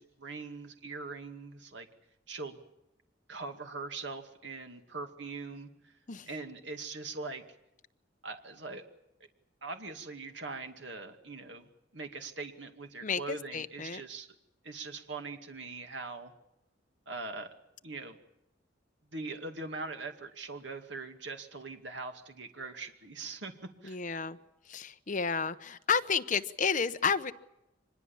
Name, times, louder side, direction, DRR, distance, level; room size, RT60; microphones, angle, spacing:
voice 1, 0.0-1.9 2.3-2.6 3.3-5.9 6.3-7.4 8.2-8.8 9.6-14.3 14.6-16.3 17.1-17.5 17.8-18.2 19.1-24.0, right 3 dB, 70° right, 6 dB, 2.3 m, -42 dB
voice 2, 13.0-14.0 23.8-24.4 24.6-27.3, left 5 dB, 45° left, 9 dB, 1.0 m, -31 dB
25.0 x 21.0 x 7.3 m, 0.86 s
head